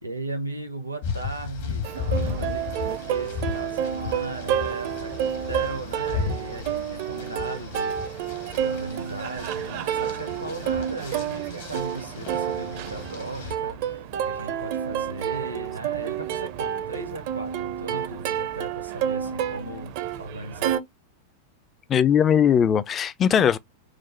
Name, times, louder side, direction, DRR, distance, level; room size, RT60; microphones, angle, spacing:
voice 1, 0.0-7.9 8.5-19.9 20.2-20.8, right 2 dB, 85° right, 0.8 m, -37 dB
sound 1, 1.0-13.6, left 5 dB, 60° left, 0.9 m, -35 dB
Plucked string instrument, 1.8-20.8, right 9 dB, 50° right, 0.5 m, -30 dB
sound 2, 8.2-15.3, left 1 dB, 85° left, 0.9 m, -50 dB
voice 2, 21.9-23.6, left 8 dB, 25° left, 0.3 m, -19 dB
4.8 x 2.0 x 3.1 m
figure-of-eight pair, 90°, 0 cm